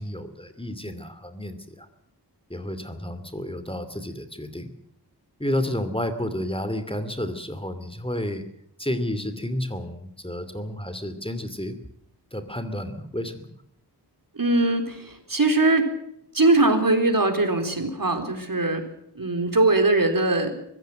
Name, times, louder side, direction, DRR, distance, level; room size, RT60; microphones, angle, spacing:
voice 1, 0.0-1.9 2.5-4.7 5.4-8.4 8.8-11.7 12.3-13.5, left 1 dB, 15° left, 10 dB, 2.6 m, -31 dB
voice 2, 14.4-15.9 16.3-18.9 19.1-20.6, right 2 dB, 55° right, 6 dB, 4.0 m, -21 dB
24.0 x 16.0 x 7.8 m, 0.75 s
wide cardioid pair, 65°, 41 cm